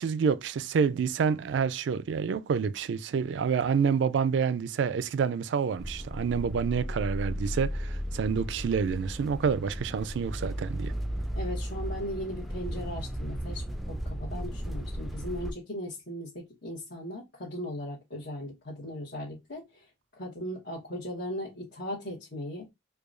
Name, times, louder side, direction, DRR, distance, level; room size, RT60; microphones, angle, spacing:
voice 1, 0.0-10.9, right 6 dB, 75° right, 0.3 m, -28 dB
sound 1, 5.8-15.5, equal, ahead, 0.3 m, -35 dB
voice 2, 11.3-19.8 20.2-22.6, equal, 60° left, 1.2 m, -38 dB
4.7 x 2.3 x 2.5 m
head